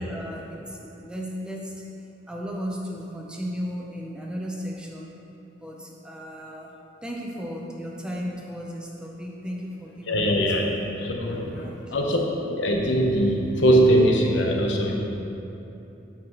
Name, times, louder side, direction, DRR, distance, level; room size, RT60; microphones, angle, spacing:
voice 1, 0.0-1.7 2.3-5.1 5.6-6.7 7.0-10.7 11.4-11.9, equal, 5° right, -2 dB, 0.6 m, -35 dB
voice 2, 10.0-12.2 12.5-14.9, right 1 dB, 85° left, 0 dB, 0.9 m, -22 dB
8.9 x 5.8 x 3.0 m, 2.9 s
head